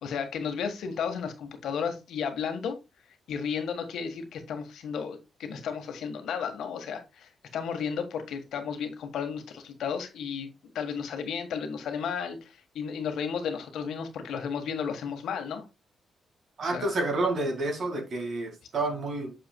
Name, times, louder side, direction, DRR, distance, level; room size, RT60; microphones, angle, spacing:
voice 1, 0.0-2.8 3.3-10.5 10.7-15.6 16.6-17.0, left 6 dB, 85° left, 1.5 m, -33 dB
voice 2, 16.6-19.3, right 2 dB, 50° right, 2.0 m, -29 dB
8.2 x 6.8 x 2.2 m
wide cardioid pair, 150°, 0 cm